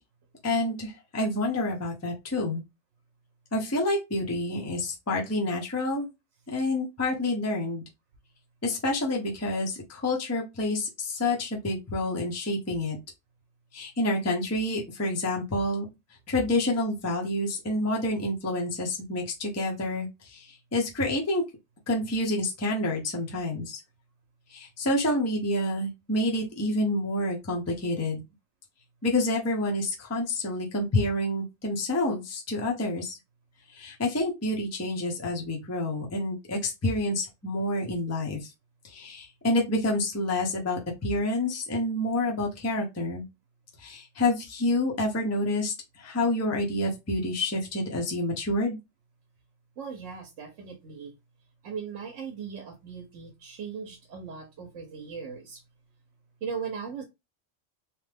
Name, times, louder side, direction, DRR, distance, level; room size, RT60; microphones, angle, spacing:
voice 1, 0.4-2.6 3.5-6.1 6.5-7.8 8.6-13.0 13.7-15.9 16.3-21.4 21.9-23.8 24.5-28.2 29.0-33.2 33.7-38.5 38.8-43.2 43.8-48.8, left 1 dB, 15° left, 0.6 m, -28 dB
voice 2, 49.8-51.1 51.6-55.6 56.4-57.0, right 6 dB, 90° right, 1.0 m, -38 dB
3.2 x 2.1 x 3.3 m
omnidirectional pair, 1.2 m